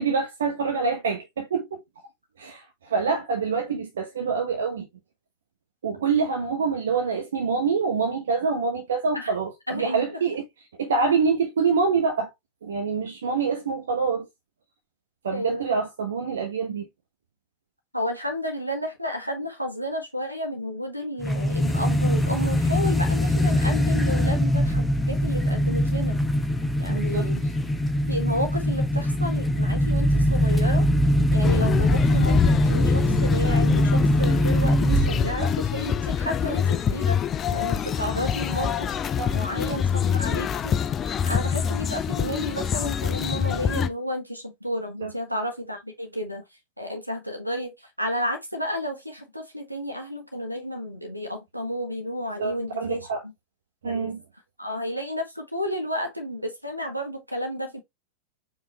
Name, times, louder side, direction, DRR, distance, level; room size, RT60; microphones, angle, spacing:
voice 1, 0.0-1.8 2.4-4.9 5.8-10.4 10.8-12.3 12.6-14.3 15.2-16.9 26.9-27.3 35.4-35.6 39.2-39.4 45.0-45.1 52.4-53.2 53.8-54.2, right 5 dB, 65° right, 1.0 m, -26 dB
voice 2, 9.7-10.1 15.3-15.6 17.9-26.2 26.8-27.4 28.1-30.8 31.3-37.2 37.5-38.9 39.3-40.7 41.2-46.4 46.8-53.3 53.8-54.1 54.6-57.8, equal, 90° right, 1.4 m, -31 dB
sound 1, 21.2-35.5, equal, 5° left, 0.8 m, -22 dB
sound 2, 31.4-43.9, left 7 dB, 25° left, 0.4 m, -26 dB
4.9 x 3.7 x 2.8 m
figure-of-eight pair, 90°, 0 cm